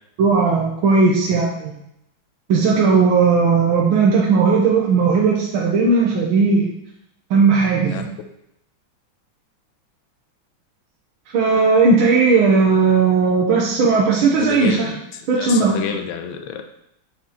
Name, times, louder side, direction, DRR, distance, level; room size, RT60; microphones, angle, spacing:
voice 1, 0.2-1.7 2.5-6.7 7.3-8.1 11.3-14.9 15.3-15.7, right 4 dB, 80° right, -3 dB, 1.8 m, -16 dB
voice 2, 14.4-16.7, left 8 dB, 80° left, 6 dB, 1.5 m, -29 dB
8.6 x 4.4 x 4.1 m, 0.79 s
omnidirectional pair, 2.2 m